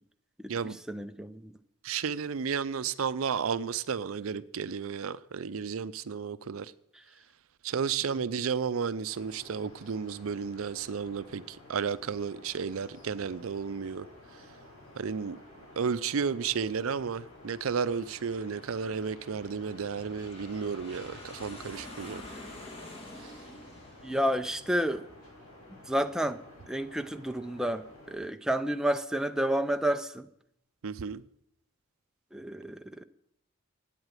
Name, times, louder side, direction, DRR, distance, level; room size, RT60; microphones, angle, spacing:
voice 1, 0.4-1.6 8.2-8.3 24.0-25.1 25.9-26.4 26.7-30.3 32.3-33.0, equal, 5° right, 0.4 m, -30 dB
voice 2, 1.8-6.7 7.6-14.1 15.0-15.4 15.8-22.2 23.2-23.3 30.8-31.2, right 6 dB, 75° right, 0.5 m, -33 dB
sound 1, 9.0-28.2, left 1 dB, 80° left, 6.6 m, -53 dB
Aircraft, 14.6-25.8, left 1 dB, 25° left, 2.3 m, -50 dB
9.2 x 8.0 x 9.1 m
head